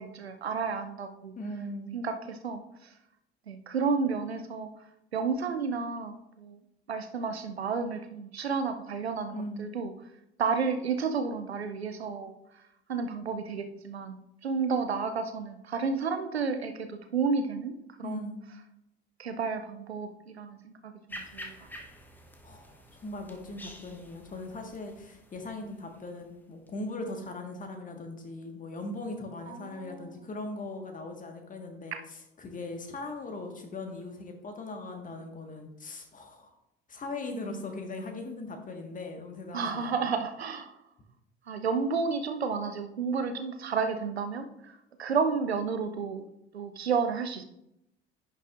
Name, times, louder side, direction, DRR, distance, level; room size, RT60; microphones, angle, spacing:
voice 1, 0.0-1.3 1.9-2.9 3.5-4.7 5.1-6.6 6.9-9.9 10.4-12.3 12.9-17.7 18.0-18.3 19.2-20.1 20.4-21.6 29.5-30.1 31.9-32.0 39.5-40.7 41.5-46.3 46.5-47.4, right 5 dB, 80° right, 8 dB, 0.7 m, -31 dB
voice 2, 1.3-1.9 9.3-9.7 18.0-18.5 22.4-36.5 36.9-40.1, left 2 dB, 25° left, 4 dB, 1.5 m, -39 dB
sound 1, 21.1-26.7, equal, 5° left, 1.0 m, -48 dB
10.5 x 6.6 x 2.5 m, 0.83 s
figure-of-eight pair, 60°, 31 cm